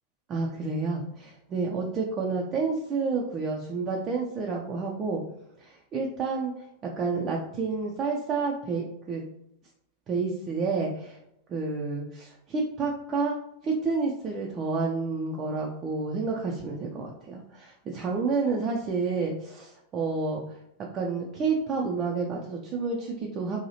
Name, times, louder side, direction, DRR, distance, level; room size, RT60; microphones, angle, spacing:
voice 1, 0.3-5.2 5.6-6.5 7.0-9.2 10.1-11.2 11.5-13.4 13.6-20.4 20.9-23.6, right 4 dB, 30° right, -1 dB, 0.4 m, -29 dB
2.8 x 2.3 x 2.8 m, 0.80 s
figure-of-eight pair, 90°, 0 cm